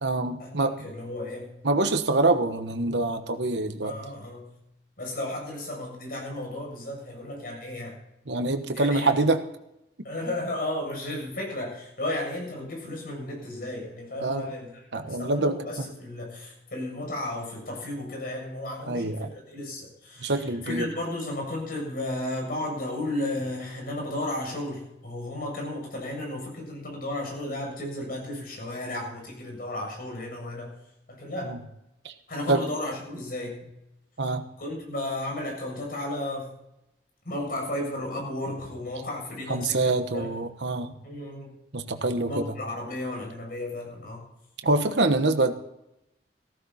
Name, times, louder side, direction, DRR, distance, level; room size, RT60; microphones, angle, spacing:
voice 1, 0.0-0.9 1.6-3.9 8.3-9.4 14.2-14.5 14.9-15.9 18.9-19.3 20.2-20.9 31.4-31.6 32.0-32.1 32.5-32.6 34.2-34.5 39.5-40.9 41.7-42.4 44.6-45.5, right 2 dB, 80° right, 7 dB, 1.2 m, -25 dB
voice 2, 0.8-1.5 3.8-4.5 5.0-8.0 8.7-9.2 10.0-30.7 31.1-31.5 32.3-33.6 34.6-36.5 37.3-40.3 41.0-41.5 42.2-44.3, left 1 dB, 55° left, 0 dB, 7.1 m, -34 dB
15.5 x 14.5 x 4.2 m, 0.85 s
head